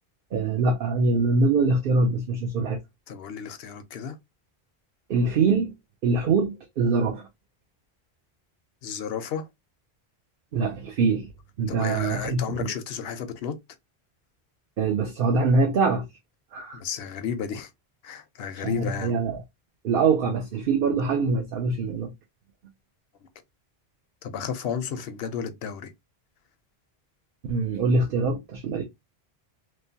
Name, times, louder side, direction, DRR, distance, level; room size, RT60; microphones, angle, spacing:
voice 1, 0.3-2.8 5.1-5.7 6.0-7.2 10.5-11.3 11.6-12.7 14.8-16.0 16.5-16.8 18.6-19.4 19.8-22.1 27.4-28.8, right 4 dB, 65° right, 0.8 m, -23 dB
voice 2, 3.1-4.2 8.8-9.5 11.7-13.6 16.7-17.7 18.0-19.1 24.2-25.9, left 7 dB, 70° left, 0.8 m, -32 dB
3.1 x 2.1 x 2.6 m
omnidirectional pair, 1.1 m